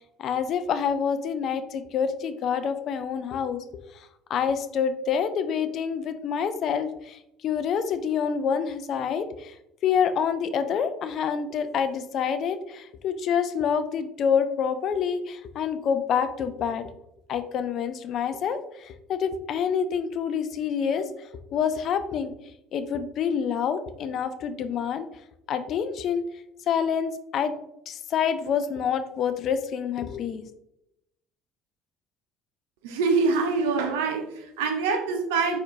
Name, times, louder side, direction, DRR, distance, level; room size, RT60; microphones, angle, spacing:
voice 1, 0.2-3.6 4.3-9.5 9.8-16.9 17.3-21.1 21.5-22.3 22.7-25.1 25.5-26.2 26.7-27.5 27.9-30.5, left 7 dB, 55° left, 10 dB, 0.4 m, -27 dB
voice 2, 32.8-35.6, right 4 dB, 75° right, 5 dB, 0.6 m, -25 dB
4.3 x 4.2 x 2.5 m, 0.81 s
hypercardioid pair, 60°, 0 cm